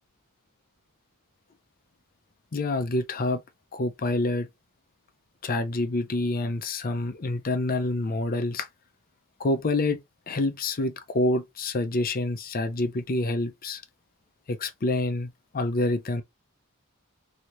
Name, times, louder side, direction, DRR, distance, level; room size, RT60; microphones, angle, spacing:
voice 1, 2.5-3.4 3.7-4.5 5.4-8.7 9.4-10.0 10.3-13.8 14.5-16.2, left 2 dB, 40° left, 0.6 m, -27 dB
3.2 x 2.8 x 2.9 m
head